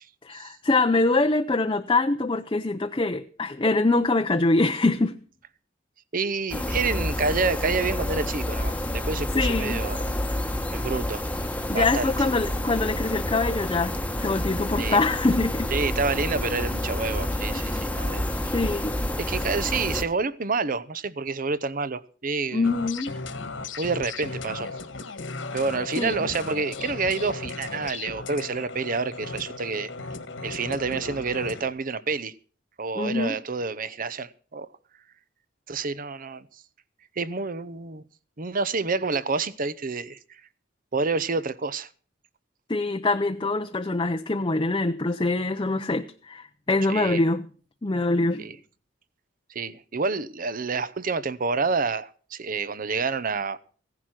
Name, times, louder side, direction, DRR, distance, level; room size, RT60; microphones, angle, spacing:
voice 1, 0.2-5.2 9.3-9.8 11.7-13.9 14.2-15.7 17.5-17.6 18.5-19.0 22.5-23.1 26.0-26.3 32.9-33.4 42.7-47.5 47.8-48.5, left 2 dB, 25° left, 0.6 m, -24 dB
voice 2, 6.1-10.0 10.7-11.2 11.7-12.1 14.8-15.0 15.7-18.5 19.2-22.7 23.8-24.7 25.5-29.9 30.4-32.3 32.8-34.7 35.7-36.5 37.2-38.0 38.4-40.2 40.9-41.9 46.9-47.2 48.4-48.6 49.5-53.6, right 4 dB, 45° right, 0.8 m, -28 dB
sound 1, 6.5-20.0, left 1 dB, 10° left, 1.1 m, -29 dB
sound 2, 22.6-31.7, left 3 dB, 75° left, 1.7 m, -36 dB
16.0 x 11.0 x 6.0 m
head